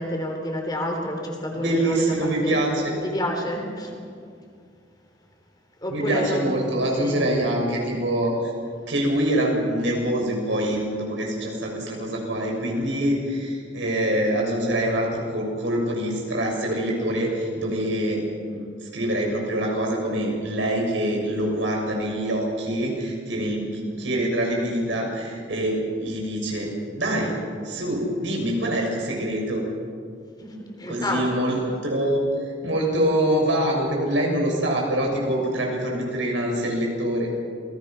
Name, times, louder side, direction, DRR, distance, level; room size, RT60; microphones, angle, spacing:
voice 1, 0.0-2.6 3.0-4.0 5.8-6.4 7.0-7.2 30.4-31.4, equal, 20° left, 2 dB, 3.5 m, -28 dB
voice 2, 1.5-2.9 5.9-8.5 8.9-27.4 27.6-29.6 30.9-37.3, right 1 dB, 90° right, -1 dB, 6.6 m, -25 dB
27.5 x 19.5 x 6.0 m, 2.2 s
head